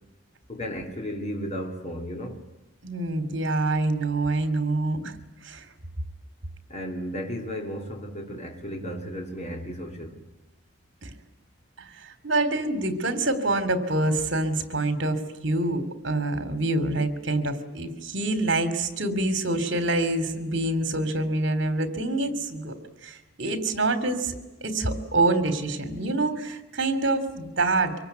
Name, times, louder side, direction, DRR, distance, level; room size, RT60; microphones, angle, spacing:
voice 1, 0.5-2.4 6.7-10.2, equal, 35° left, 2.9 m, -34 dB
voice 2, 2.8-5.1 5.4-5.6 11.0-11.1 11.8-22.8 23.0-24.3 24.6-27.9, right 2 dB, 60° right, 3.1 m, -26 dB
25.0 x 23.5 x 9.4 m
head